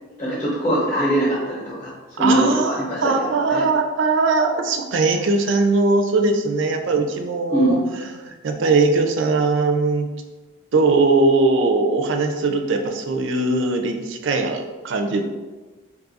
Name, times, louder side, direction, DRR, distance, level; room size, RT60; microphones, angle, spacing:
voice 1, 0.2-1.9 2.2-3.6 7.5-7.9, equal, 30° left, -7 dB, 0.7 m, -22 dB
voice 2, 2.2-7.8 8.2-10.1 10.7-15.2, right 3 dB, 60° right, 5 dB, 0.4 m, -20 dB
2.7 x 2.4 x 3.9 m, 1.2 s
head